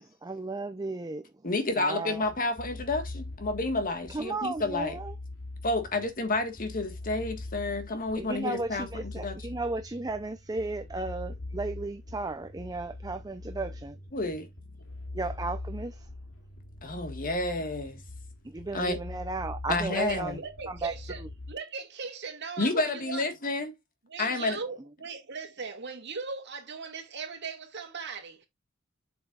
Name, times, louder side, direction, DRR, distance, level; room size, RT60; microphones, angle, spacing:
voice 1, 0.0-1.3 1.8-2.2 4.1-5.1 8.2-14.0 15.1-16.1 18.4-20.4 20.7-20.9, right 3 dB, 20° right, 0.6 m, -34 dB
voice 2, 1.4-5.0 5.6-9.4 14.1-14.5 16.8-18.0 18.7-19.0 19.7-20.4 22.6-23.7 24.2-24.6, left 2 dB, 45° left, 1.6 m, -30 dB
sound 1, 2.1-21.5, left 2 dB, 80° left, 2.6 m, -42 dB
voice 3, 19.9-21.2 21.5-23.3 24.1-28.5, right 4 dB, 60° right, 2.2 m, -39 dB
7.7 x 6.7 x 2.5 m
head